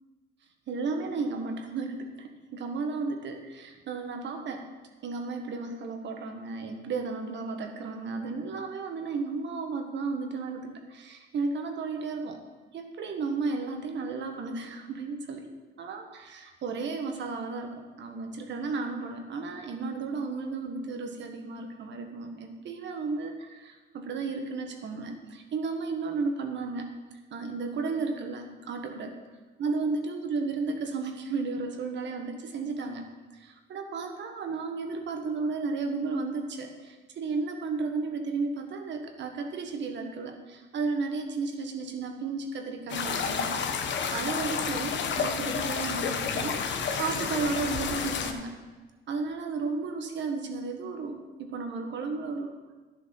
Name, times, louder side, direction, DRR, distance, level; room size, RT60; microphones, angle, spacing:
voice 1, 0.7-4.6 5.0-12.4 12.7-15.5 15.8-29.1 29.6-33.0 33.3-48.5 49.1-52.5, right 4 dB, 65° right, 4 dB, 1.5 m, -33 dB
sound 1, 42.9-48.3, left 6 dB, 65° left, 1.0 m, -30 dB
11.0 x 7.2 x 5.7 m, 1.3 s
cardioid pair, 90°, 20 cm